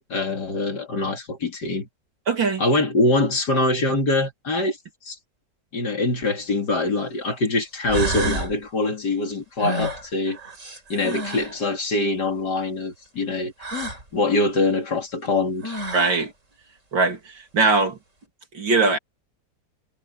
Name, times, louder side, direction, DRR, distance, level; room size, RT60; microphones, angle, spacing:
voice 1, 0.1-1.9 2.6-4.8 5.0-5.2 5.7-10.4 10.9-13.5 14.1-15.8, left 2 dB, 60° left, 3.5 m, -24 dB
voice 2, 2.3-2.6 15.9-16.3 16.9-18.0 18.5-19.0, right 4 dB, 90° right, 3.9 m, -21 dB
sound 1, 6.4-6.5 7.5-7.6 7.9-8.5 9.6-11.6 13.6-14.0 15.3-15.4 15.6-16.2, right 1 dB, 40° right, 4.9 m, -29 dB
omnidirectional pair, 2.0 m